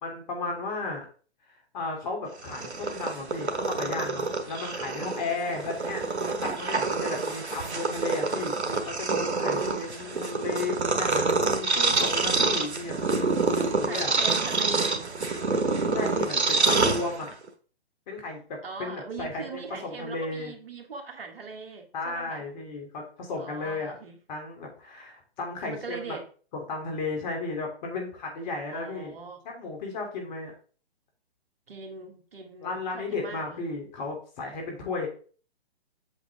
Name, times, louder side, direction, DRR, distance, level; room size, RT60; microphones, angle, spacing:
voice 1, 0.0-1.1 1.5-6.0 6.3-12.9 13.7-14.1 15.9-16.4 16.7-17.3 18.1-20.5 21.9-23.9 24.3-26.2 26.5-29.1 29.5-30.5 32.6-35.1, left 3 dB, 45° left, 3.1 m, -34 dB
Purr, 2.3-17.5, right 3 dB, 85° right, 1.3 m, -27 dB
voice 2, 13.8-15.1 16.3-16.8 18.6-22.5 23.3-24.2 25.6-26.2 28.7-29.4 31.7-33.7, right 4 dB, 60° right, 1.9 m, -40 dB
8.0 x 5.2 x 3.6 m
figure-of-eight pair, 135°, 32 cm